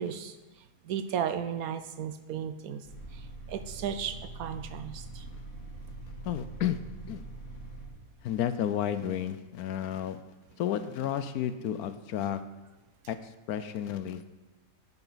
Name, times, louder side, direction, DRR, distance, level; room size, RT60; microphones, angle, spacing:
voice 1, 0.0-5.3, right 8 dB, 70° right, 10 dB, 0.9 m, -35 dB
sound 1, 2.8-7.9, right 2 dB, 50° left, 3.2 m, -43 dB
voice 2, 6.2-6.8 7.1-7.2 8.2-10.2 10.6-12.4 13.1-14.2, left 10 dB, 70° left, 12 dB, 1.0 m, -32 dB
11.0 x 9.8 x 4.0 m, 1.1 s
omnidirectional pair, 1.8 m